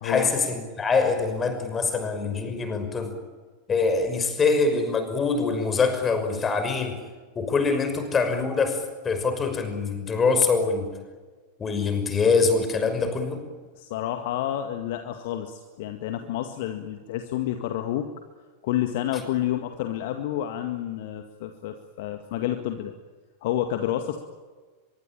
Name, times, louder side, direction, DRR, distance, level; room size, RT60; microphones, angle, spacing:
voice 1, 0.0-3.1 3.7-7.0 7.4-10.9 11.6-13.4, left 4 dB, 20° left, 7 dB, 5.9 m, -24 dB
voice 2, 13.8-18.1 18.6-22.9 23.4-24.2, left 12 dB, 50° left, 7 dB, 2.0 m, -29 dB
25.5 x 23.0 x 8.8 m, 1.4 s
figure-of-eight pair, 90°, 0 cm